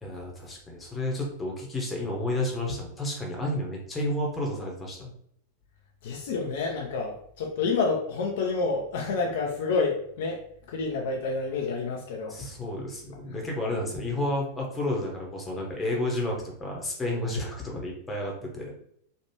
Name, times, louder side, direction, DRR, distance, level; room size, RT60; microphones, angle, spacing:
voice 1, 0.0-5.1 12.3-18.7, left 1 dB, 15° left, -1 dB, 0.9 m, -31 dB
voice 2, 6.0-10.4 10.7-12.4, left 4 dB, 55° left, 0 dB, 0.5 m, -28 dB
3.2 x 2.5 x 2.8 m, 0.68 s
figure-of-eight pair, 90°, 0 cm